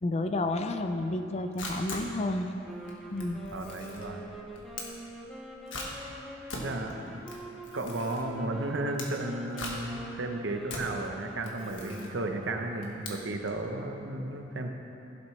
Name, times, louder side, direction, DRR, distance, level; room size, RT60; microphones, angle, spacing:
voice 1, 0.0-2.5 3.1-3.4, left 2 dB, 35° left, 7 dB, 0.5 m, -30 dB
Camera, 1.2-13.6, left 2 dB, 75° left, 1.5 m, -43 dB
sound 1, 2.6-13.0, equal, ahead, 0.8 m, -45 dB
voice 2, 3.5-4.2 6.5-7.2 7.7-14.7, right 2 dB, 65° right, 4 dB, 0.9 m, -34 dB
16.5 x 7.6 x 3.2 m, 3.0 s
head